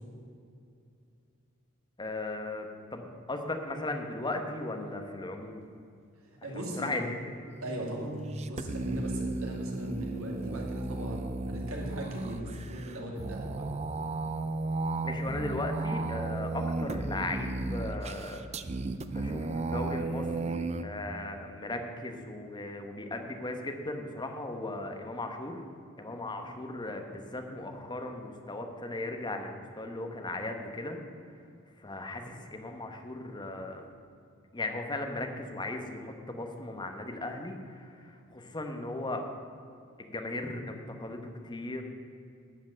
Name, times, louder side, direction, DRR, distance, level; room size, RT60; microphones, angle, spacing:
voice 1, 2.0-5.6 6.5-7.0 15.0-18.6 19.1-25.6 26.0-31.0 31.8-33.9 34.5-39.2 40.0-41.8, left 2 dB, 20° left, 4 dB, 1.1 m, -37 dB
voice 2, 6.4-7.1 7.6-13.7 26.4-26.5, equal, 75° right, -1 dB, 2.5 m, -38 dB
sound 1, 7.6-20.8, right 3 dB, 30° right, 0.5 m, -34 dB
11.5 x 5.8 x 8.9 m, 2.5 s
head